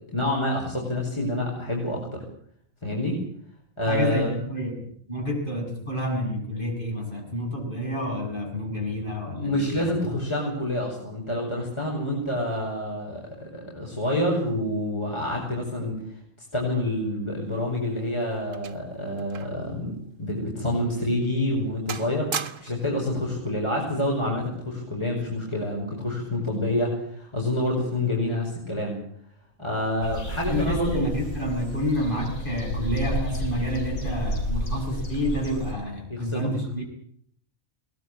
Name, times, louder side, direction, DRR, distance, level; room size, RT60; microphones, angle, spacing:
voice 1, 0.1-2.2 2.8-3.2 3.8-4.3 9.2-16.0 16.5-29.0 29.6-31.1 36.1-36.5, left 1 dB, 20° left, -2 dB, 5.9 m, -27 dB
voice 2, 3.9-9.9 30.5-36.8, equal, 35° left, -1 dB, 8.4 m, -29 dB
sound 1, 17.6-19.7 20.0-20.2 20.8-20.9 21.4-21.6 21.9-22.9 23.9-24.2, right 6 dB, 70° right, 1.6 m, -37 dB
sound 2, 30.0-35.7, equal, 90° left, 3.9 m, -31 dB
22.0 x 19.5 x 8.8 m, 0.64 s
omnidirectional pair, 1.4 m